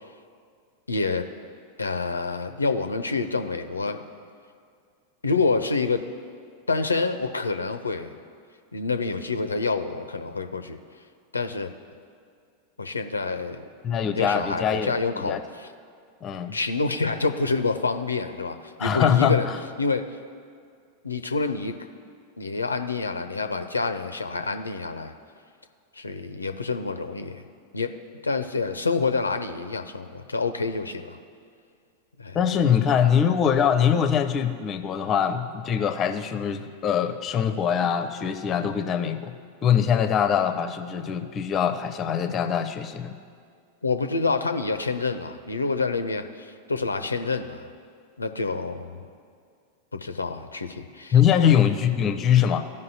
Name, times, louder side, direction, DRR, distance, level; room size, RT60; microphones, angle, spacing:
voice 1, 0.9-1.3 1.8-4.0 5.2-6.0 6.7-8.1 8.7-10.8 11.3-11.7 12.8-13.6 14.1-15.7 16.5-19.5 19.8-20.1 21.0-21.7 22.4-25.1 25.9-27.4 27.7-31.2 32.2-32.4 43.8-47.7 48.2-49.0 49.9-51.6, left 4 dB, 80° left, 9 dB, 0.4 m, -27 dB
voice 2, 13.8-15.4 16.2-16.6 18.8-19.6 32.3-39.3 39.6-43.1 51.1-52.6, left 8 dB, 30° left, 8 dB, 0.5 m, -23 dB
15.0 x 5.3 x 2.7 m, 2.2 s
figure-of-eight pair, 90°, 0 cm